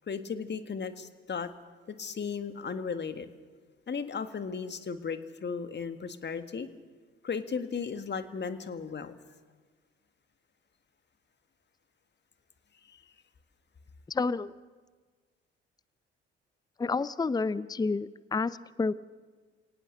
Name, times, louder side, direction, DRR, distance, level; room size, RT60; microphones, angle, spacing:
voice 1, 0.1-1.5 1.9-3.3 3.9-6.7 7.2-9.1 12.9-13.0, left 5 dB, 35° left, 10 dB, 1.8 m, -35 dB
voice 2, 14.1-14.5 16.8-18.9, left 4 dB, 15° left, 18 dB, 0.6 m, -30 dB
29.5 x 18.0 x 6.7 m, 1.4 s
figure-of-eight pair, 45°, 31 cm